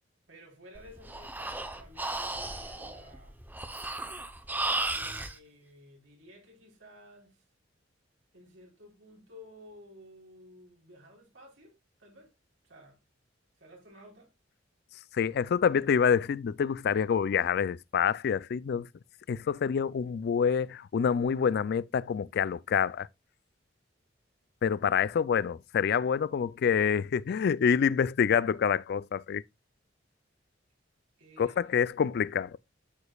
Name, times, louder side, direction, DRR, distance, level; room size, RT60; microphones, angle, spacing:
voice 1, 0.3-3.4 4.9-7.4 8.3-12.3 12.6-13.0 13.6-14.3 31.2-31.7, equal, 80° right, 3.8 m, -54 dB
Breathing, 0.8-5.3, right 2 dB, 10° right, 0.7 m, -35 dB
voice 2, 15.1-18.9 19.3-23.1 24.6-29.4 31.4-32.6, left 7 dB, 60° left, 0.3 m, -27 dB
12.0 x 5.0 x 2.3 m
head